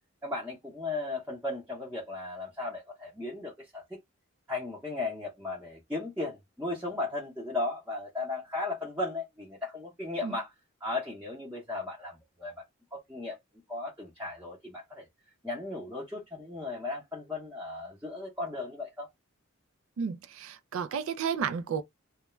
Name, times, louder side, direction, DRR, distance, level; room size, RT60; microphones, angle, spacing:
voice 1, 0.2-4.0 4.5-10.5 10.8-12.5 12.9-13.4 13.7-15.1 15.4-19.1, left 2 dB, 5° right, 0.7 m, -36 dB
voice 2, 20.0-21.8, right 7 dB, 70° right, 0.3 m, -32 dB
2.3 x 2.1 x 3.0 m
head